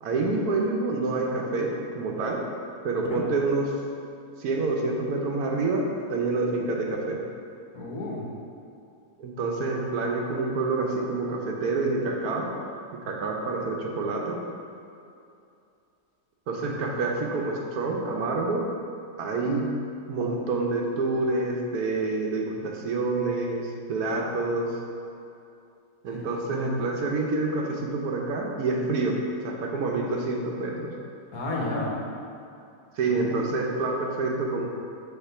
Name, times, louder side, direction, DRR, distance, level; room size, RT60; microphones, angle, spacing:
voice 1, 0.0-2.4 2.8-3.7 4.4-5.8 6.1-7.2 9.2-12.5 13.1-14.4 16.5-18.6 19.2-19.7 20.1-24.7 26.0-29.2 29.4-30.9 33.0-34.7, right 3 dB, 70° right, 0 dB, 1.2 m, -27 dB
voice 2, 7.7-8.3 16.6-16.7 26.1-26.7 31.3-31.9 33.1-33.5, left 2 dB, 65° left, -2 dB, 1.4 m, -32 dB
5.8 x 3.9 x 5.6 m, 2.6 s
omnidirectional pair, 1.7 m